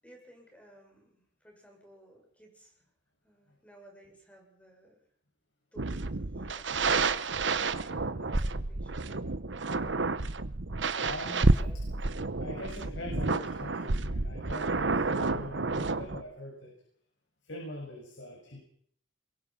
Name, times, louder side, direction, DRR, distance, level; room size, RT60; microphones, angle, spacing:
voice 1, 0.0-2.8 3.2-5.0 5.7-6.7 7.8-9.4 11.5-11.8, equal, 5° left, 1 dB, 7.0 m, -56 dB
sound 1, 5.8-16.2, right 3 dB, 75° right, 1.0 m, -30 dB
voice 2, 10.9-11.6 12.4-16.7 17.4-18.6, left 1 dB, 90° left, 0 dB, 6.4 m, -42 dB
23.0 x 22.0 x 5.9 m, 0.64 s
head